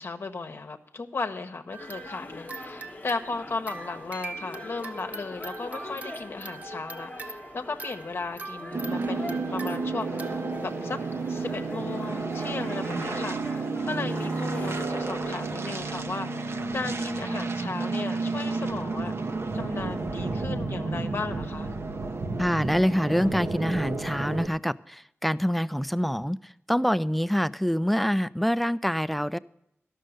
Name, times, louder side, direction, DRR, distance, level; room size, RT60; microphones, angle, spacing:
voice 1, 0.0-11.0 11.3-19.1 19.5-21.7, left 3 dB, 60° left, 6 dB, 0.9 m, -36 dB
sound 1, 1.7-11.7, right 3 dB, 40° right, 1.1 m, -43 dB
sound 2, 1.8-15.4, left 2 dB, 30° left, 1.0 m, -43 dB
sound 3, 8.7-24.5, right 3 dB, 65° right, 0.9 m, -31 dB
voice 2, 22.4-29.4, equal, ahead, 17 dB, 0.3 m, -26 dB
12.5 x 6.5 x 7.7 m, 0.80 s
wide cardioid pair, 75°, 5 cm